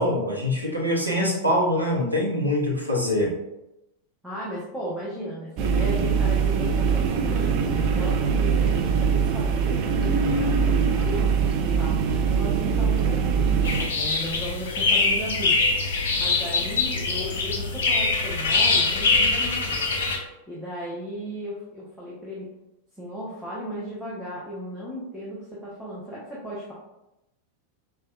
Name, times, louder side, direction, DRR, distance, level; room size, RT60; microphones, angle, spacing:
voice 1, 0.0-3.3, left 1 dB, 85° right, -3 dB, 0.7 m, -24 dB
voice 2, 4.2-15.6 16.2-19.9 20.5-22.5 23.0-26.7, equal, 5° left, -9 dB, 0.9 m, -35 dB
sound 1, 5.6-13.9, right 6 dB, 40° right, 0.3 m, -22 dB
sound 2, 13.6-20.2, left 3 dB, 60° left, 0.6 m, -23 dB
4.5 x 2.2 x 2.4 m, 0.90 s
figure-of-eight pair, 90°, 0 cm